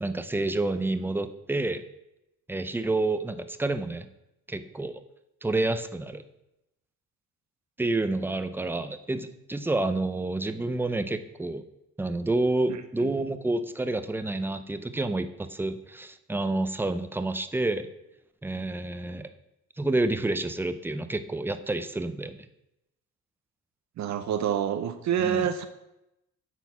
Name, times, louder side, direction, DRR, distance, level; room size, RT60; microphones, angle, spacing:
voice 1, 0.0-1.8 2.5-4.1 4.5-5.0 5.4-6.2 7.8-11.6 12.0-17.9 18.4-19.3 19.8-22.4 25.2-25.5, right 2 dB, 5° right, 10 dB, 0.5 m, -29 dB
voice 2, 24.0-25.7, right 9 dB, 65° right, 9 dB, 0.6 m, -27 dB
8.1 x 4.6 x 5.6 m, 0.90 s
cardioid pair, 90°, 30 cm